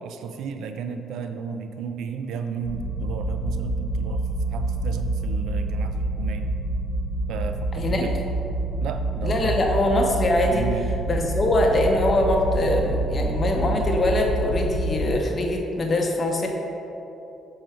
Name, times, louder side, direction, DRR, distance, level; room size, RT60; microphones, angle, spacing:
voice 1, 0.0-6.6 7.3-8.1 8.8-9.6 10.5-11.0, right 6 dB, 80° right, 7 dB, 0.3 m, -34 dB
sound 1, 2.6-15.1, right 2 dB, ahead, 0.7 m, -27 dB
voice 2, 9.2-10.7 11.1-16.5, left 1 dB, 35° left, 1 dB, 0.8 m, -23 dB
6.2 x 3.9 x 4.4 m, 3.0 s
cardioid pair, 110°, 0 cm